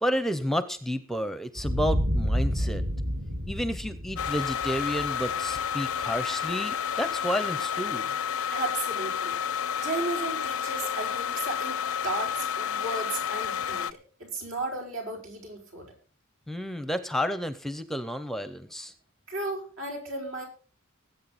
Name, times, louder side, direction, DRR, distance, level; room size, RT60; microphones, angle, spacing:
voice 1, 0.0-2.8 3.5-8.1 16.5-18.9, equal, ahead, 12 dB, 0.6 m, -31 dB
sound 1, 1.6-6.2, equal, 50° right, 1.6 m, -30 dB
sound 2, 4.2-13.9, left 8 dB, 80° left, 0.5 m, -30 dB
voice 2, 8.5-9.4 9.8-15.9 19.3-20.4, right 2 dB, 75° right, 0 dB, 5.5 m, -34 dB
20.0 x 8.3 x 4.1 m, 0.38 s
head